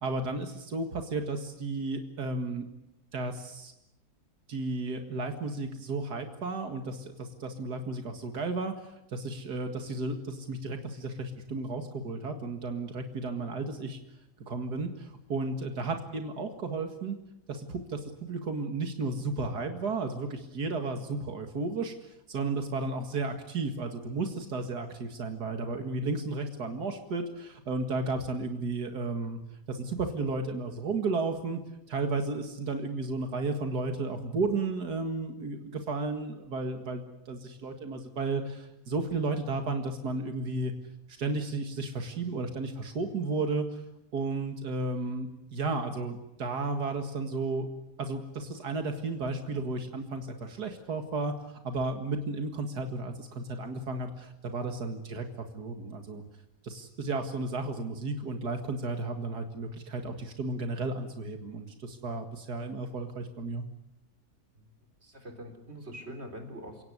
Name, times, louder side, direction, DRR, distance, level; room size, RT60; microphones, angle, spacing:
voice 1, 0.0-2.7 3.1-3.7 4.5-14.0 14.5-17.2 17.5-29.4 29.7-31.6 31.9-40.7 41.2-43.8 44.1-47.7 48.0-56.2 56.6-63.6, right 3 dB, 90° right, 6 dB, 2.5 m, -33 dB
voice 2, 65.0-66.8, equal, 40° right, 5 dB, 4.2 m, -44 dB
29.0 x 17.0 x 9.7 m, 0.87 s
omnidirectional pair, 1.7 m